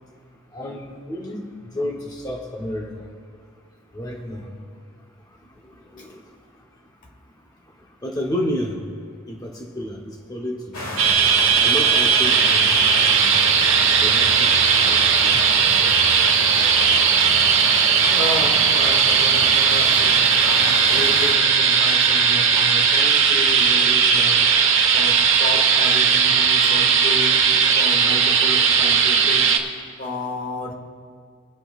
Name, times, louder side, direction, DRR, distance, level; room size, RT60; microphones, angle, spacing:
voice 1, 0.5-1.5 1.7-3.1 3.9-4.5 5.9-6.2 8.0-8.8 9.3-11.0 11.6-12.8 13.1-13.3 14.0-14.5 14.8-15.4, equal, 20° left, -1 dB, 1.0 m, -30 dB
sound 1, 10.7-21.4, left 1 dB, 90° left, 1.5 m, -30 dB
sound 2, 11.0-29.6, right 6 dB, 65° right, 1.1 m, -17 dB
voice 2, 18.1-24.6 24.9-29.5 30.0-30.7, left 1 dB, 40° left, 2 dB, 1.3 m, -32 dB
25.5 x 8.7 x 2.5 m, 2.1 s
head